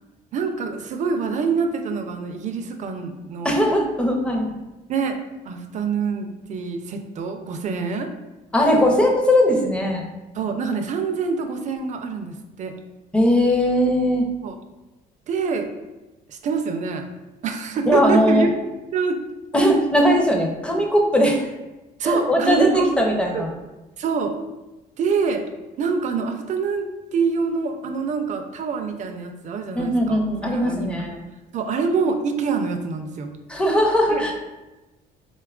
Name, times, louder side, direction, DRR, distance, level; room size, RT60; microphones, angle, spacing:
voice 1, 0.3-3.6 4.9-5.2 5.4-8.1 10.3-12.7 14.4-14.6 15.3-15.7 16.3-17.1 17.4-18.5 18.9-19.2 22.0-22.9 23.3-23.5 24.0-24.3 25.0-25.4 25.8-26.9 27.1-31.2 31.5-33.3 34.1-34.2, right 5 dB, 45° right, 6 dB, 0.4 m, -25 dB
voice 2, 3.4-4.5 8.5-10.0 13.1-14.3 17.9-18.5 19.5-21.5 22.0-23.5 29.8-31.2 33.5-34.4, equal, 5° left, 0 dB, 0.5 m, -19 dB
4.0 x 2.2 x 2.3 m, 1.1 s
cardioid pair, 110°, 17 cm